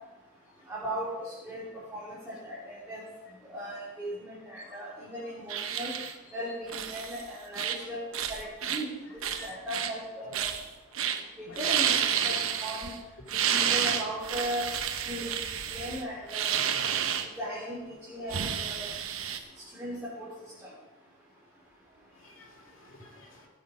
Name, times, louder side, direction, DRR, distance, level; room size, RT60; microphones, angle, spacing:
voice 1, 0.7-3.0 3.4-6.0 6.3-10.5 11.4-12.9 13.3-14.7 15.1-15.3 15.7-16.5 17.2-18.9 19.7-20.3 20.6-20.7, equal, 5° right, -10 dB, 3.1 m, -37 dB
sound 1, 5.5-6.1 6.7-7.2 7.5-7.8 8.1-8.8 9.2-9.9 10.3-10.7 10.9-11.2 11.5-13.0 13.3-17.3 18.3-19.4, right 8 dB, 75° right, 1.0 m, -30 dB
voice 2, 22.2-23.5, left 4 dB, 70° left, 1 dB, 2.4 m, -51 dB
16.0 x 8.2 x 5.1 m, 1.1 s
head